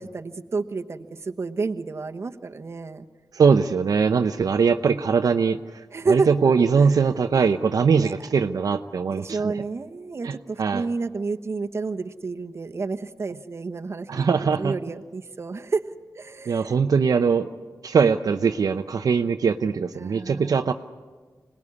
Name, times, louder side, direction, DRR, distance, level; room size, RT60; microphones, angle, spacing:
voice 1, 0.0-3.1 5.9-6.3 6.8-6.9 8.0-8.1 9.1-15.8 16.2-16.7 20.0-20.5, right 4 dB, 45° right, 5 dB, 1.1 m, -30 dB
voice 2, 3.3-9.6 10.2-10.8 14.1-14.8 16.5-17.5 17.8-20.7, right 5 dB, 70° right, 6 dB, 0.7 m, -21 dB
26.0 x 19.0 x 9.8 m, 1.4 s
wide cardioid pair, 120°, 6 cm